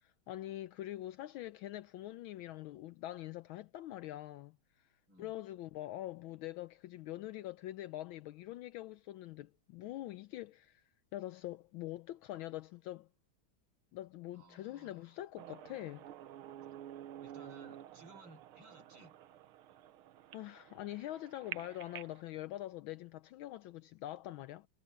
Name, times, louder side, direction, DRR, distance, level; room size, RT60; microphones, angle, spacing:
voice 1, 0.0-4.9 5.2-13.1 13.9-16.1 20.3-24.7, left 14 dB, 75° left, 1.4 m, -44 dB
voice 2, 14.3-15.2 17.2-19.1, right 2 dB, 60° right, 5.4 m, -58 dB
sound 1, 15.4-22.2, right 11 dB, 90° right, 1.7 m, -50 dB
omnidirectional pair, 2.3 m